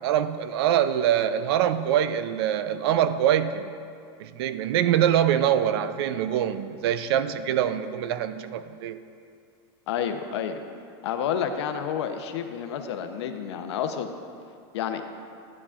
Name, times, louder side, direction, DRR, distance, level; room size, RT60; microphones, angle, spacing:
voice 1, 0.0-3.7 4.2-9.0, right 10 dB, 65° right, 12 dB, 0.5 m, -24 dB
voice 2, 9.9-10.6 11.0-14.1 14.7-15.0, left 8 dB, 80° left, 7 dB, 0.7 m, -29 dB
11.5 x 9.7 x 2.5 m, 2.4 s
supercardioid pair, 165°, 14 cm